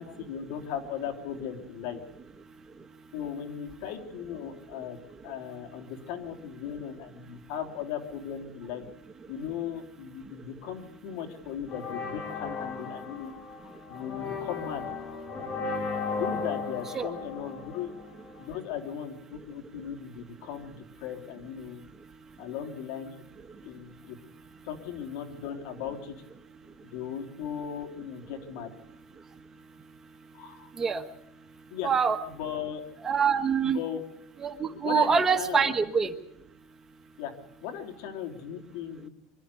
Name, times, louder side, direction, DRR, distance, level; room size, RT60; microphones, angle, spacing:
voice 1, 0.0-2.0 3.1-5.0 5.2-8.8 9.3-13.3 13.9-14.9 16.1-17.9 18.4-21.8 22.4-23.2 23.6-24.2 24.6-26.2 26.8-28.7 30.3-30.7 31.7-31.9 32.3-32.8 33.6-34.0 34.8-35.7 37.2-37.3 37.6-39.1, left 8 dB, 70° left, 4 dB, 3.2 m, -37 dB
sound 1, 11.7-18.5, left 4 dB, 35° left, 3.4 m, -36 dB
voice 2, 31.8-32.2 33.0-33.8 34.4-36.1, right 6 dB, 20° right, 7 dB, 1.3 m, -25 dB
25.0 x 12.5 x 8.4 m, 0.80 s
supercardioid pair, 140°, 2 cm